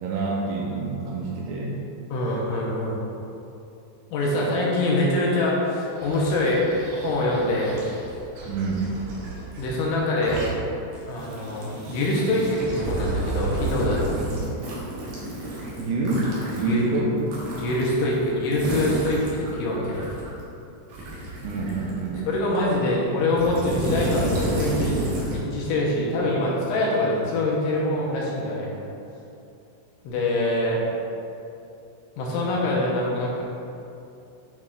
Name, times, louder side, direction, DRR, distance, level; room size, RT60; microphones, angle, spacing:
voice 1, 0.0-1.8 8.5-8.9 15.8-16.3 16.6-17.1 21.4-22.3, right 3 dB, 85° right, -3 dB, 2.8 m, -27 dB
voice 2, 2.1-3.0 4.1-6.6 7.0-7.8 9.6-10.5 11.1-14.2 16.6-16.9 17.6-20.1 22.3-25.0 25.3-28.7 30.0-30.8 32.2-33.4, left 1 dB, 80° left, -4 dB, 3.1 m, -24 dB
sound 1, 6.0-9.7 10.1-10.5 10.9-20.4 20.9-22.8 23.3-25.4, right 2 dB, 65° right, 2.2 m, -31 dB
8.9 x 6.4 x 2.4 m, 2.7 s
omnidirectional pair, 5.8 m